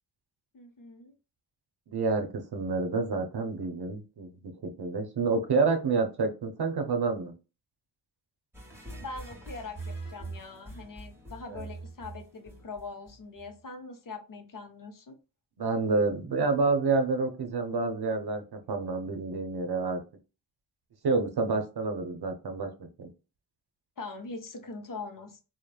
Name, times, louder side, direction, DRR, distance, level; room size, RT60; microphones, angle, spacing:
voice 1, 0.5-1.1 9.0-15.2 24.0-25.4, left 3 dB, 45° left, 6 dB, 0.6 m, -42 dB
voice 2, 1.9-7.3 11.5-11.6 15.6-20.0 21.0-23.1, right 4 dB, 50° right, 6 dB, 0.7 m, -28 dB
sound 1, 8.5-13.5, right 2 dB, 5° right, 1.1 m, -43 dB
3.1 x 2.0 x 2.3 m, 0.32 s
cardioid pair, 50°, 49 cm